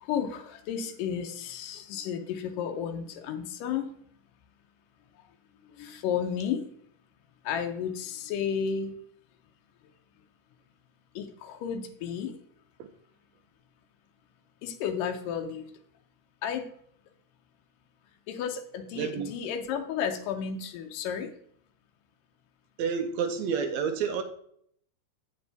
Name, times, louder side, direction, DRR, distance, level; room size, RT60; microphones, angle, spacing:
voice 1, 0.0-3.9 5.6-6.6 7.4-9.0 11.2-12.3 14.6-15.7 16.4-16.7 18.3-21.3, left 7 dB, 85° left, 2.4 m, -32 dB
voice 2, 19.0-19.3 22.8-24.2, right 6 dB, 75° right, 1.7 m, -29 dB
7.9 x 7.0 x 3.4 m
omnidirectional pair, 3.8 m